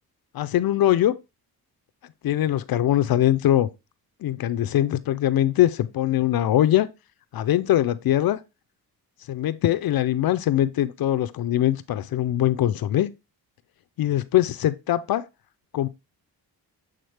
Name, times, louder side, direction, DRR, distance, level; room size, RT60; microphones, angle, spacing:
voice 1, 0.3-1.1 2.2-3.7 4.2-6.9 7.3-8.4 9.3-13.1 14.0-15.2 15.7-15.9, left 12 dB, 65° left, 0.5 m, -22 dB
7.9 x 3.7 x 3.3 m
cardioid pair, 105°, 39 cm